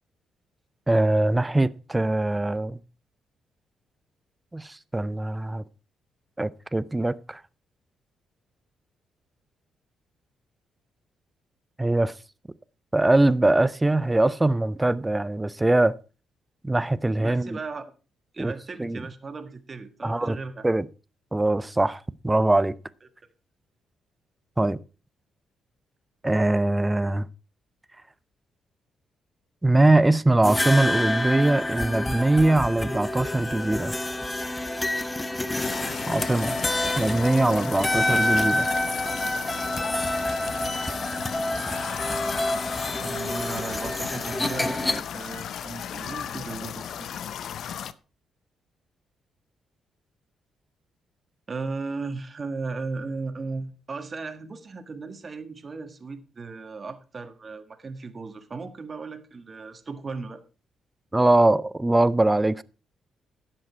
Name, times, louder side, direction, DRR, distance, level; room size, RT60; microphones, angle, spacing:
voice 1, 0.9-2.8 4.5-5.6 6.4-7.4 11.8-12.1 12.9-15.9 16.6-17.6 18.4-18.5 18.8-19.0 20.0-20.4 20.6-20.9 21.3-22.7 24.6-24.8 26.2-27.3 29.6-33.9 36.1-36.6 37.0-38.7 61.1-62.6, right 2 dB, 15° right, 0.6 m, -22 dB
voice 2, 17.2-17.8 18.3-20.6 37.3-38.4 43.0-47.2 51.5-60.4, right 4 dB, 40° right, 1.6 m, -36 dB
sound 1, 30.4-45.0, left 1 dB, 20° left, 0.9 m, -28 dB
sound 2, 35.6-47.9, left 9 dB, 70° left, 0.5 m, -35 dB
11.0 x 7.8 x 4.5 m
supercardioid pair, 55°, 0 cm